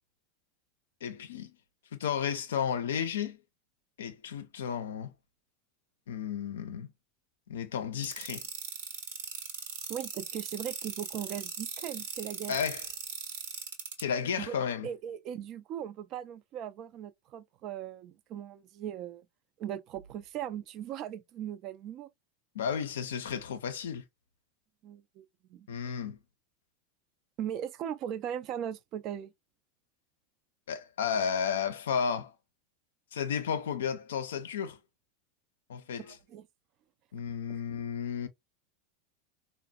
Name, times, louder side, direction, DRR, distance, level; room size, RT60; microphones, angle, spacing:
voice 1, 1.0-1.5 1.9-3.4 4.0-5.1 6.1-6.9 7.5-8.4 12.5-12.8 14.0-14.9 22.5-24.0 25.7-26.2 30.7-32.3 33.1-34.8 35.7-36.2 37.1-38.3, left 7 dB, 75° left, 0.5 m, -33 dB
sound 1, 8.0-14.0, right 6 dB, 70° right, 0.9 m, -38 dB
voice 2, 9.9-12.6 14.4-14.6 14.8-19.3 19.6-22.1 24.8-25.2 25.5-25.7 27.4-29.3 36.1-36.5 37.5-37.6, right 10 dB, 45° right, 0.4 m, -38 dB
3.9 x 2.0 x 2.2 m
hypercardioid pair, 85°, 0 cm